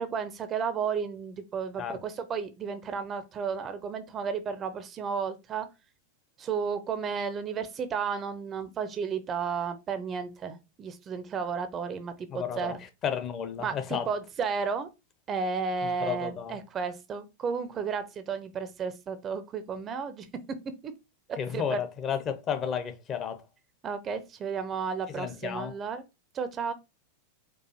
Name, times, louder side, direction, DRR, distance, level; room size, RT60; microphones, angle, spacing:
voice 1, 0.0-5.7 6.4-12.8 13.6-14.9 15.3-20.6 20.8-20.9 21.5-21.8 23.8-26.0 26.3-26.7, right 6 dB, 25° right, 0.5 m, -33 dB
voice 2, 12.3-12.8 13.0-14.1 16.0-16.6 21.4-23.4 25.1-25.8, left 8 dB, 30° left, 0.6 m, -32 dB
4.5 x 2.4 x 2.9 m
figure-of-eight pair, 90°, 0 cm